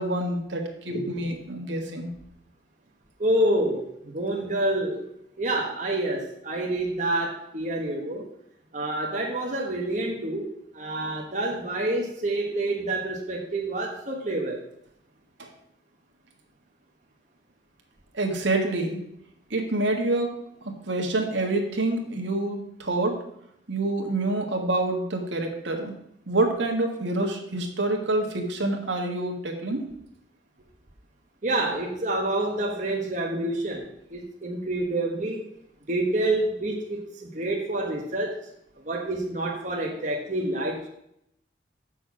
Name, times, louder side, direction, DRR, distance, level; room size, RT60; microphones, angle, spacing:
voice 1, 0.0-2.1 15.4-15.5 18.1-19.0 19.5-20.4 20.6-23.2 23.7-25.9 26.3-29.8, right 2 dB, 75° right, 2 dB, 1.7 m, -27 dB
voice 2, 3.2-5.0 5.4-8.3 8.7-14.6 31.4-35.4 35.9-38.4 38.8-40.9, right 1 dB, 40° right, -1 dB, 1.2 m, -28 dB
7.7 x 6.3 x 6.0 m, 0.76 s
head